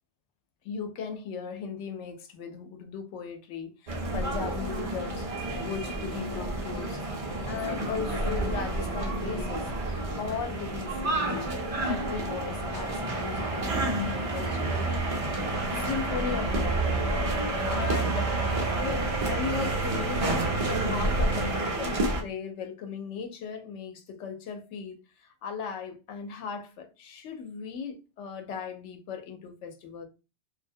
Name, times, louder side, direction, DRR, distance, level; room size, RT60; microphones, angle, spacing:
voice 1, 0.6-5.3 5.6-7.0 7.5-14.9 15.7-17.3 17.7-18.4 18.8-20.3 20.6-30.1, left 6 dB, 90° left, 0.9 m, -37 dB
sound 1, 3.9-22.2, right 2 dB, 40° right, 0.5 m, -29 dB
2.4 x 2.0 x 2.6 m
omnidirectional pair, 1.2 m